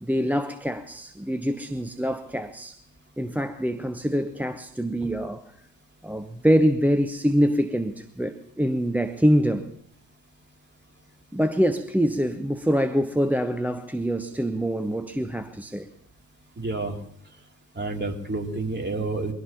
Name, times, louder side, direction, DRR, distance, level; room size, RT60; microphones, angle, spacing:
voice 1, 0.0-2.8 3.2-5.4 6.0-9.7 11.3-15.9, equal, 5° right, 0.9 m, -25 dB
voice 2, 16.6-17.0 17.7-19.3, right 3 dB, 20° right, 3.0 m, -29 dB
23.5 x 17.0 x 2.9 m
figure-of-eight pair, 45°, 47 cm